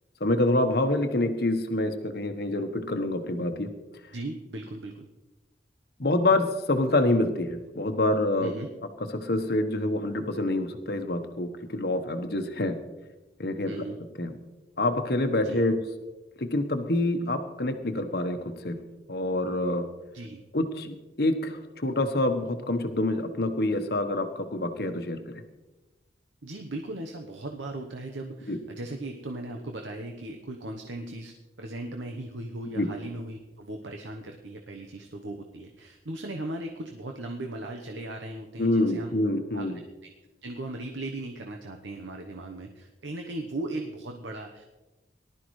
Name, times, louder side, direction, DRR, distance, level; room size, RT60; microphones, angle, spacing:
voice 1, 0.2-3.7 6.0-8.5 9.1-12.8 13.4-13.7 14.2-14.3 14.8-15.8 16.4-18.8 19.1-19.9 20.5-25.4 28.5-28.6 32.8-32.9 38.6-39.8, left 1 dB, 55° left, 7 dB, 1.1 m, -26 dB
voice 2, 4.1-5.1 8.4-8.7 13.6-14.0 15.4-15.6 20.1-20.4 26.4-39.1 39.5-39.7 40.4-44.6, right 2 dB, 85° right, 3 dB, 1.0 m, -37 dB
19.0 x 12.0 x 3.2 m, 1.1 s
head